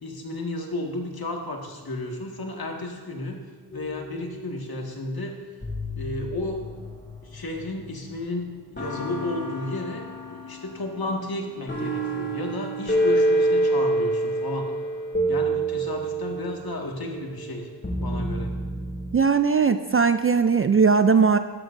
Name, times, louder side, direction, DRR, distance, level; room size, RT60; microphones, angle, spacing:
voice 1, 0.0-3.4 3.7-5.4 5.9-6.7 7.2-14.7 15.3-17.7 18.0-18.5, left 2 dB, 55° left, 1 dB, 1.9 m, -33 dB
sound 1, 3.7-4.9 5.6-8.2 8.8-19.2, right 1 dB, 25° left, 2.4 m, -28 dB
voice 2, 19.1-21.4, right 5 dB, 30° right, 10 dB, 0.4 m, -19 dB
14.0 x 11.0 x 2.6 m, 1.5 s
cardioid pair, 60°, 44 cm